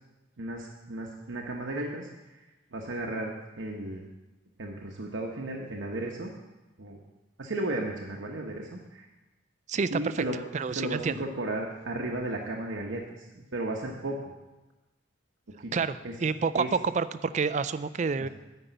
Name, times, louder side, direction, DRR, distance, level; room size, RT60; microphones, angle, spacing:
voice 1, 0.4-2.1 2.3-2.5 2.7-4.1 4.6-6.3 6.8-7.0 7.4-9.1 9.9-10.4 10.7-14.3 15.6-15.7 16.0-16.2 16.5-16.7 18.2-18.3, right 1 dB, 75° right, 0 dB, 0.9 m, -34 dB
voice 2, 9.7-10.2 10.5-11.2 15.7-18.3, right 5 dB, 35° right, 13 dB, 0.3 m, -28 dB
9.8 x 5.4 x 8.0 m, 1.1 s
head